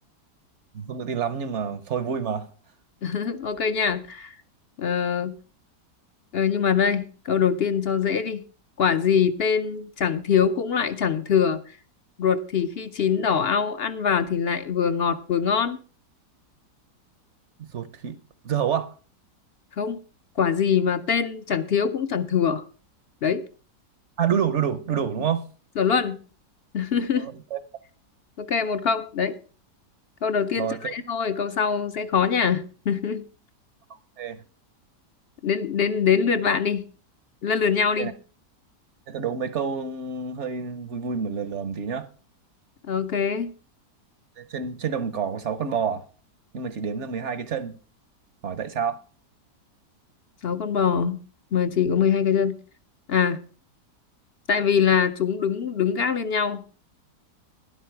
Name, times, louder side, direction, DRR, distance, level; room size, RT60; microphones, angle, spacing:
voice 1, 0.7-2.5 17.7-18.9 24.2-25.5 27.2-27.6 30.6-30.9 33.9-34.4 38.0-38.1 39.1-42.1 44.4-46.0 46.5-47.8 48.4-49.0, right 7 dB, 55° right, 0.8 m, -28 dB
voice 2, 3.0-4.4 4.8-5.4 6.3-8.4 8.8-11.6 12.2-15.8 19.8-20.0 20.4-22.6 23.2-23.4 25.8-26.2 26.7-27.3 28.4-29.4 30.2-33.2 35.4-36.8 37.4-38.1 42.9-43.5 50.4-51.2 51.5-52.6 53.1-53.4 54.5-56.6, left 7 dB, 60° left, 0.6 m, -23 dB
12.5 x 11.0 x 4.5 m
omnidirectional pair, 1.8 m